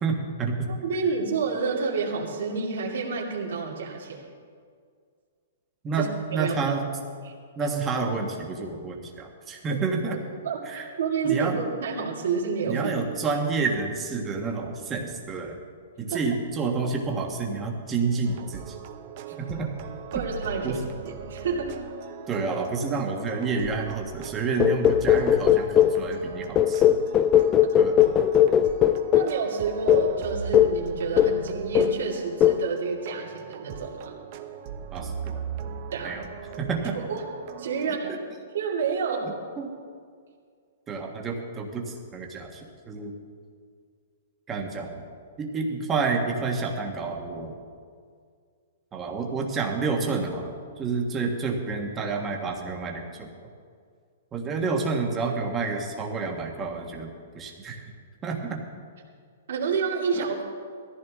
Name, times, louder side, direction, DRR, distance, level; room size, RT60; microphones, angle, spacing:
voice 1, 0.0-0.7 5.8-6.9 7.6-10.2 10.6-10.8 11.2-11.6 12.7-15.6 16.0-18.7 19.4-19.7 20.6-20.8 22.3-27.0 27.8-28.0 34.9-35.4 36.0-36.2 36.5-37.0 38.1-38.2 39.6-39.7 40.9-43.1 44.5-45.0 45.4-47.5 48.9-53.3 54.3-57.8 58.2-58.6 60.1-60.2, right 4 dB, 15° right, 1 dB, 1.5 m, -29 dB
voice 2, 0.8-4.3 6.0-6.1 6.3-6.6 7.2-7.3 10.1-10.2 10.4-12.8 16.1-16.2 19.3-19.4 20.1-21.7 29.1-34.1 35.9-36.1 36.9-37.3 37.6-38.1 38.5-39.3 59.5-60.4, right 5 dB, 70° right, -3 dB, 2.6 m, -29 dB
sound 1, 18.2-38.0, right 7 dB, 35° right, 0.9 m, -39 dB
sound 2, 24.6-26.0 26.6-29.4 29.9-30.1 30.5-30.8 31.2-31.5 31.8-32.1 32.4-32.7, left 10 dB, 15° left, 0.4 m, -19 dB
19.0 x 14.5 x 3.7 m, 2.1 s
hypercardioid pair, 170°, 0 cm